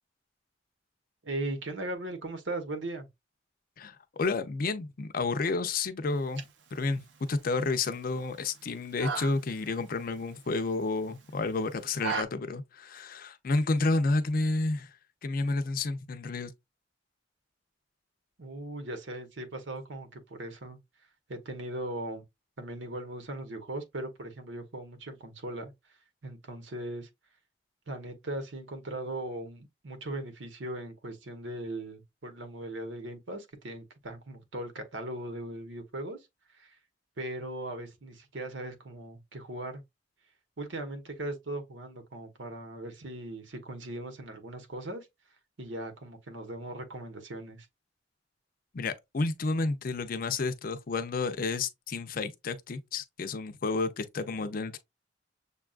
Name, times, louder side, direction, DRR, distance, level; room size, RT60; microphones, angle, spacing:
voice 1, 1.2-3.1 18.4-20.8 21.3-22.2 22.6-25.7 26.2-27.1 27.9-36.2 36.6-36.8 37.2-39.8 40.6-45.1 45.6-47.7, right 1 dB, 90° right, 1.0 m, -39 dB
voice 2, 3.8-6.4 6.7-14.9 15.2-16.5 48.7-54.8, left 3 dB, 50° left, 0.5 m, -30 dB
sound 1, 6.1-12.2, right 6 dB, 70° right, 0.6 m, -41 dB
6.8 x 2.3 x 2.4 m
head